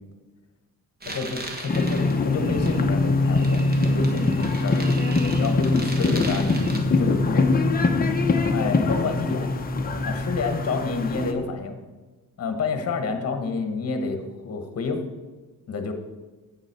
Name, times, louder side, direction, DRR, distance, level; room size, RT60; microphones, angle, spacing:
sound 1, 1.0-6.8, right 2 dB, 25° right, 1.2 m, -38 dB
voice 1, 1.1-3.6 3.9-4.8 5.4-7.5 8.5-9.5 10.0-11.8 12.4-15.0 15.7-15.9, left 4 dB, 40° left, 6 dB, 1.2 m, -28 dB
sound 2, 1.7-11.3, left 3 dB, 25° left, 0.8 m, -23 dB
8.3 x 7.2 x 6.8 m, 1.2 s
wide cardioid pair, 170°, 37 cm